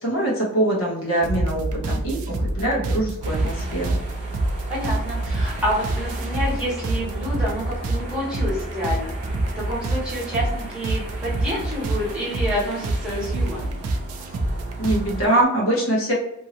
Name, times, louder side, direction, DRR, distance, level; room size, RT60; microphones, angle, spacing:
voice 1, 0.0-4.0 14.8-16.1, right 1 dB, 65° left, -4 dB, 1.1 m, -23 dB
sound 1, 1.2-15.3, right 2 dB, 85° right, 0.5 m, -27 dB
sound 2, 3.2-15.4, right 1 dB, 30° right, 0.8 m, -39 dB
voice 2, 4.7-9.1 9.5-13.8, equal, 5° right, -8 dB, 1.1 m, -28 dB
2.8 x 2.6 x 2.8 m, 0.83 s
head